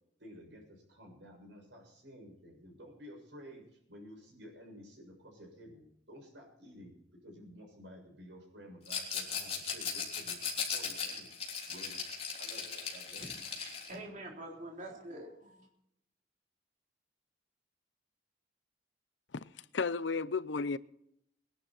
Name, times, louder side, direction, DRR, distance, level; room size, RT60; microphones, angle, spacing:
voice 1, 0.2-13.4, equal, 75° right, 7.2 m, -53 dB
Rattle, 8.8-13.9, left 6 dB, 35° left, 3.4 m, -38 dB
voice 2, 13.2-15.7, right 1 dB, 45° right, 3.8 m, -46 dB
voice 3, 19.7-20.8, left 4 dB, 80° left, 0.6 m, -33 dB
21.0 x 11.5 x 4.4 m
head